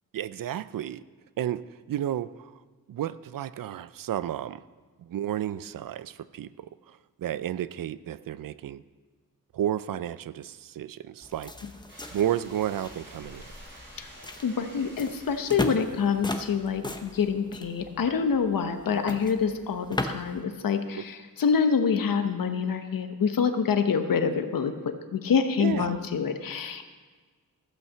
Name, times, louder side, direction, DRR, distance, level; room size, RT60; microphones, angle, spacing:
voice 1, 0.1-1.0 1.4-2.5 2.9-4.6 5.1-6.7 7.2-8.8 9.5-11.5 12.1-13.5 21.0-21.1 25.6-25.9, right 11 dB, 75° right, 16 dB, 0.5 m, -32 dB
sound 1, 11.2-20.4, left 1 dB, 15° left, 0.8 m, -38 dB
sound 2, 11.9-15.9, right 1 dB, 35° right, 4.2 m, -50 dB
voice 2, 14.4-26.8, left 6 dB, 75° left, 8 dB, 1.0 m, -26 dB
15.0 x 5.7 x 7.5 m, 1.4 s
wide cardioid pair, 125°, 34 cm